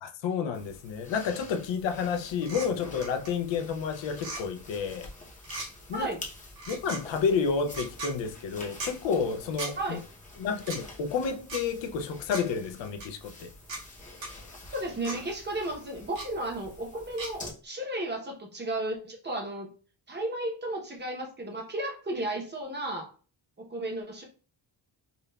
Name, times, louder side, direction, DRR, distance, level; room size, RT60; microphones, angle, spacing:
voice 1, 0.0-5.1 5.9-6.1 6.7-10.0 10.4-13.5, left 6 dB, 85° left, 0.5 m, -30 dB
sound 1, 0.5-17.5, left 2 dB, 20° left, 0.7 m, -48 dB
sound 2, 2.4-2.7 3.0-3.3 4.1-4.4 5.4-5.7 6.6-7.0 7.7-8.1 8.8-8.9 9.6-9.7 10.6-10.8 11.5-11.6 12.3-12.4 13.0-13.1 13.7-13.8 14.2-14.3 15.0-15.2 16.2-16.3 17.2-17.3, right 2 dB, 80° right, 1.7 m, -37 dB
voice 2, 14.7-19.7 20.1-23.1 23.6-24.2, right 1 dB, 25° right, 0.7 m, -34 dB
5.3 x 2.2 x 2.2 m
wide cardioid pair, 175°, 44 cm